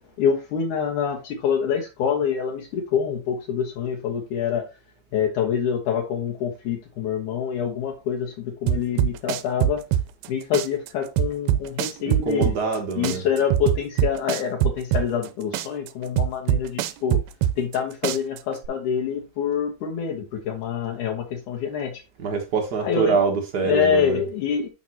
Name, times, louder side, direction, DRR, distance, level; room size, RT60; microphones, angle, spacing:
voice 1, 0.2-4.6 5.1-9.8 10.3-12.5 13.0-17.2 17.6-22.0 22.8-23.2 23.6-24.7, left 7 dB, 80° left, 2.6 m, -26 dB
sound 1, 8.7-10.3 10.5-12.8 13.0-15.3 15.5-17.8 18.0-18.7, right 11 dB, 80° right, 1.9 m, -23 dB
voice 2, 12.0-13.2 22.2-24.2, right 5 dB, 65° right, 1.0 m, -25 dB
8.6 x 5.9 x 2.9 m
omnidirectional pair, 3.6 m